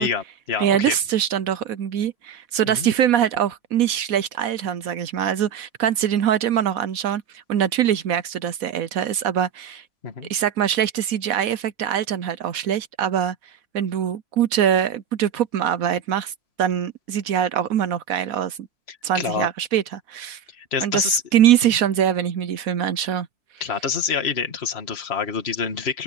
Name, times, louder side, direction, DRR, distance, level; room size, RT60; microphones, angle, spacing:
voice 1, 0.0-0.9 2.7-2.9 10.0-10.3 18.9-19.5 20.6-21.2 23.6-26.0, left 6 dB, 30° left, 2.2 m, -26 dB
voice 2, 0.6-9.8 10.3-13.4 13.7-16.3 16.6-18.6 19.0-20.4 20.8-23.3, right 9 dB, 70° right, 0.8 m, -23 dB
open air
omnidirectional pair, 2.3 m